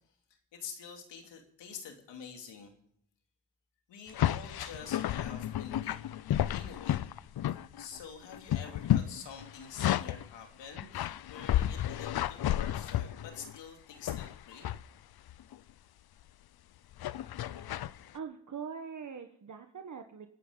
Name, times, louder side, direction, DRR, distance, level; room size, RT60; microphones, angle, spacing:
voice 1, 0.5-2.7 3.9-6.0 6.5-7.1 7.5-14.7, left 6 dB, 90° left, 3 dB, 3.0 m, -47 dB
sound 1, 4.1-10.3 10.8-13.6 14.1-14.8 15.3-15.6 17.0-18.0, left 12 dB, 60° left, 0.7 m, -32 dB
voice 2, 18.1-20.3, right 6 dB, 45° right, 5 dB, 1.4 m, -42 dB
26.5 x 9.5 x 4.0 m, 0.72 s
cardioid pair, 70°, 42 cm